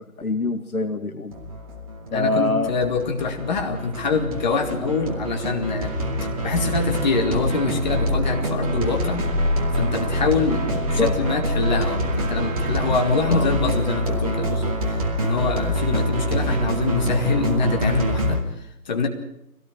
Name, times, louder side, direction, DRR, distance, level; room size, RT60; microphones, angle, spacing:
voice 1, 0.0-1.3 2.1-2.7 11.0-11.1 13.3-13.5, left 2 dB, 65° left, 8 dB, 2.2 m, -24 dB
sound 1, 1.3-18.4, equal, 25° right, 2.4 m, -25 dB
voice 2, 2.1-5.9 6.4-9.3 9.7-19.1, left 4 dB, 30° left, 4 dB, 2.4 m, -25 dB
24.0 x 18.0 x 6.5 m, 0.81 s
figure-of-eight pair, 155°, 47 cm